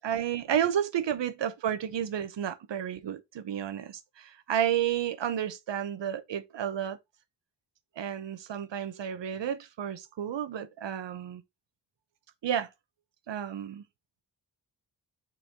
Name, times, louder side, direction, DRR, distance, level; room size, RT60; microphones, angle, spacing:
voice 1, 0.0-7.0 8.0-11.4 12.4-12.7 13.3-13.8, right 9 dB, 80° right, 0.9 m, -31 dB
4.5 x 4.1 x 5.1 m
wide cardioid pair, 105°, 43 cm